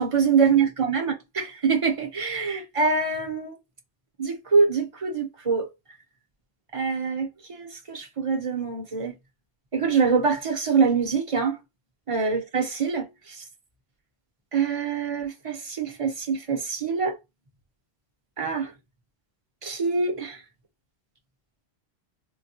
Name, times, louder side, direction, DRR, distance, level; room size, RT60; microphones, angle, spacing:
voice 1, 0.0-3.5 4.2-5.7 6.7-9.2 9.7-11.6 12.1-13.1 13.4-13.5 14.5-17.2 18.4-18.7 19.6-20.4, right 5 dB, 35° right, 0.8 m, -24 dB
3.9 x 2.2 x 2.7 m
omnidirectional pair, 1.0 m